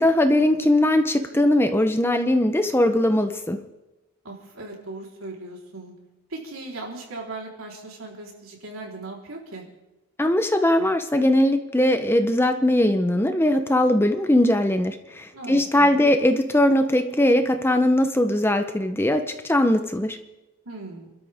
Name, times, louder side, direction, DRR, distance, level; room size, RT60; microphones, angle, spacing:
voice 1, 0.0-3.6 10.2-20.2, left 1 dB, 10° left, 7 dB, 0.8 m, -20 dB
voice 2, 4.2-5.9 6.3-9.6 15.3-16.1 20.7-21.1, right 2 dB, 80° right, -1 dB, 3.9 m, -38 dB
29.0 x 13.0 x 3.6 m, 1.0 s
head